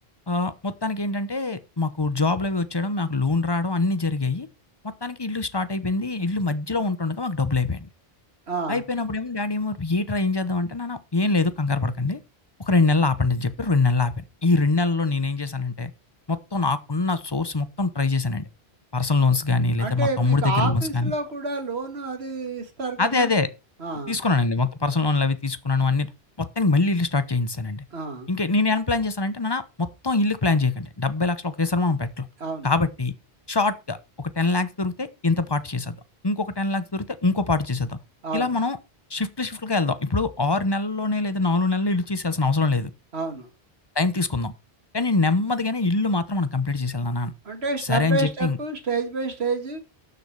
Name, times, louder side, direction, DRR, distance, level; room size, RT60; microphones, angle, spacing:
voice 1, 0.3-4.5 5.0-7.9 8.7-12.2 12.7-14.1 14.4-15.9 16.3-18.5 18.9-21.1 23.0-23.5 24.1-26.1 26.4-27.8 28.3-32.3 32.6-33.1 33.5-36.0 36.2-38.0 38.3-38.8 39.1-42.9 44.0-44.5 44.9-47.3 47.9-48.6, left 3 dB, 25° left, 1.0 m, -24 dB
voice 2, 8.5-8.8 19.8-23.3 23.8-24.2 27.9-28.3 32.4-32.7 38.2-38.5 43.1-43.5 47.4-49.8, right 3 dB, 90° right, 2.3 m, -29 dB
12.0 x 6.9 x 4.8 m
omnidirectional pair, 1.1 m